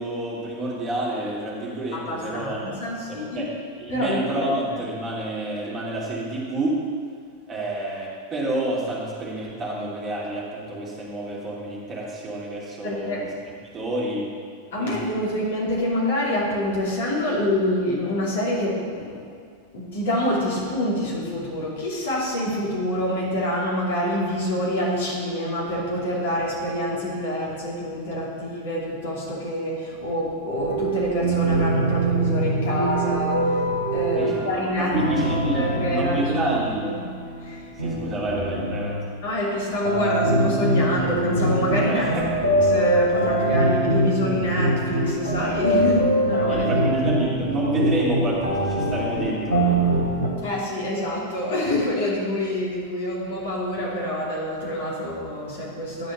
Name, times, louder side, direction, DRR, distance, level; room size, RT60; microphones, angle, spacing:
voice 1, 0.0-2.8 3.1-3.5 3.8-6.8 7.5-13.2 13.7-14.3 14.8-15.0 34.1-34.4 34.8-36.9 37.8-39.0 41.9-42.2 46.5-49.8, right 2 dB, 25° right, -5 dB, 2.6 m, -28 dB
voice 2, 1.9-3.4 3.9-4.4 12.8-13.3 14.7-19.2 19.7-33.6 33.9-35.0 35.5-36.5 36.8-37.1 37.4-37.7 39.2-42.0 42.7-46.8 50.4-56.1, left 1 dB, 55° left, -5 dB, 2.8 m, -26 dB
sound 1, 30.6-39.0 39.8-50.3, right 1 dB, 85° left, 1.8 m, -23 dB
10.5 x 4.8 x 7.2 m, 2.1 s
figure-of-eight pair, 90°, 0 cm